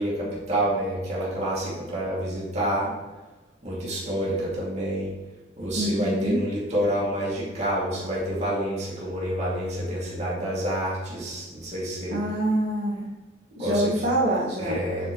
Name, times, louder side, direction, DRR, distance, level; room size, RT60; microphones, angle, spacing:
voice 1, 0.0-2.9 3.6-5.1 5.6-12.2 13.6-14.0 14.6-15.1, right 1 dB, 40° right, -7 dB, 2.6 m, -28 dB
voice 2, 5.8-6.4 12.1-12.9 13.6-14.8, right 1 dB, 80° right, -7 dB, 1.8 m, -25 dB
8.0 x 6.0 x 3.2 m, 1.2 s
head